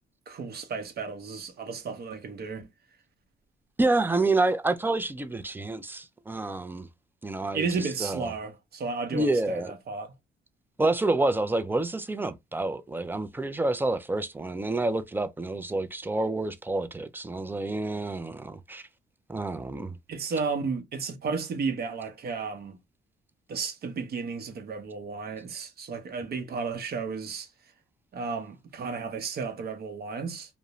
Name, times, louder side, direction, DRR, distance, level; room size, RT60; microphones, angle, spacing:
voice 1, 0.3-2.6 7.5-10.1 20.1-22.8 23.5-27.5 28.1-30.6, right 5 dB, 50° right, 0.7 m, -33 dB
voice 2, 3.8-6.9 7.2-7.7 8.0-8.3 9.1-9.7 10.8-18.8 19.3-20.0, right 2 dB, 10° right, 0.3 m, -28 dB
2.5 x 2.0 x 2.9 m
cardioid pair, 90°, 20 cm